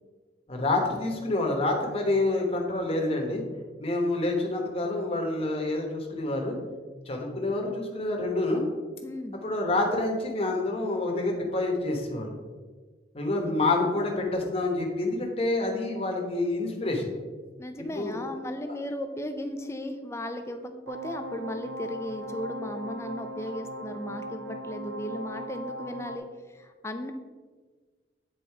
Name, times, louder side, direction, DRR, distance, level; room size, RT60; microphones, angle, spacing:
voice 1, 0.5-3.4 3.8-6.6 7.1-8.6 9.4-12.3 13.1-17.1 17.9-18.2 18.7-18.8, left 2 dB, 30° left, 1 dB, 1.2 m, -27 dB
voice 2, 9.0-9.4 13.3-13.4 13.8-14.2 17.6-27.1, left 1 dB, 15° left, 7 dB, 0.5 m, -36 dB
sound 1, 20.9-26.2, equal, 90° right, 0.5 m, -38 dB
8.3 x 4.1 x 4.6 m, 1.4 s
head